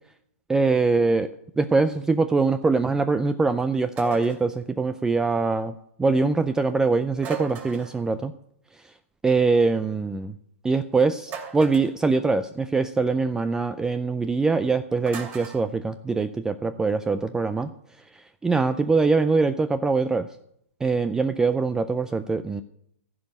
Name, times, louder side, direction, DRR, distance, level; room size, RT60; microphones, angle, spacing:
voice 1, 0.5-1.3 1.6-5.7 6.0-8.3 9.2-10.3 10.6-17.7 18.4-20.3 20.8-22.6, right 4 dB, 10° right, 12 dB, 0.4 m, -23 dB
sound 1, 4.0-4.5 7.2-8.0 11.3-12.0 15.1-15.6, right 7 dB, 30° right, 2.8 m, -36 dB
15.0 x 5.2 x 9.0 m, 0.71 s
hypercardioid pair, 120°, 7 cm